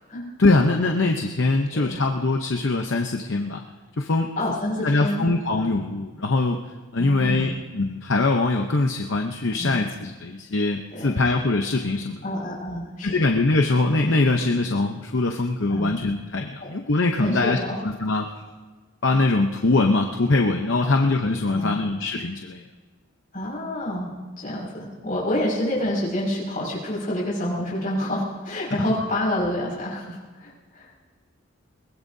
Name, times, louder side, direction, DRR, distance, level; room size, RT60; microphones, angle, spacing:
voice 1, 0.4-3.6 4.0-4.3 4.8-6.6 6.9-12.2 13.0-17.6 17.8-18.3 19.0-22.6, left 2 dB, 60° left, 3 dB, 0.8 m, -22 dB
voice 2, 4.4-5.3 5.5-5.7 6.9-7.6 9.6-9.9 10.9-11.2 12.2-13.2 15.7-16.0 16.6-16.7 17.2-17.8 20.8-21.1 21.5-21.8 23.3-24.1 24.4-30.9, left 1 dB, 40° left, -5 dB, 5.6 m, -28 dB
22.5 x 19.5 x 2.7 m, 1.3 s
head